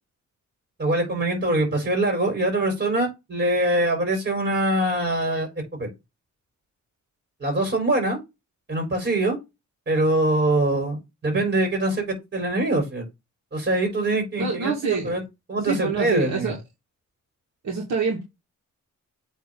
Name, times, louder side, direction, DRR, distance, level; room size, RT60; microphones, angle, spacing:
voice 1, 0.8-5.9 7.4-8.2 8.7-9.4 9.9-13.1 13.5-15.2 15.5-16.6, right 1 dB, 35° right, 4.3 m, -23 dB
voice 2, 14.4-15.2 15.7-16.6 17.6-18.2, right 4 dB, 65° right, 2.4 m, -26 dB
8.5 x 3.6 x 3.8 m
wide cardioid pair, 140°, 30 cm